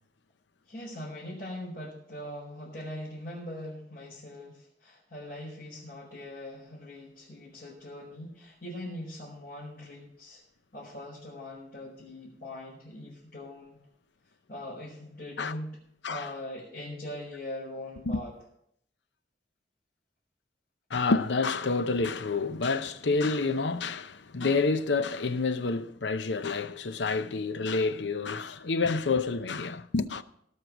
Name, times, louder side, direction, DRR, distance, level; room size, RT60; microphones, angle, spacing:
voice 1, 0.7-10.4 10.7-13.8 14.5-15.8 16.1-18.3, left 1 dB, 60° left, 4.6 m, -41 dB
voice 2, 20.9-30.2, left 4 dB, 85° left, 0.7 m, -28 dB
18.0 x 6.4 x 6.1 m
head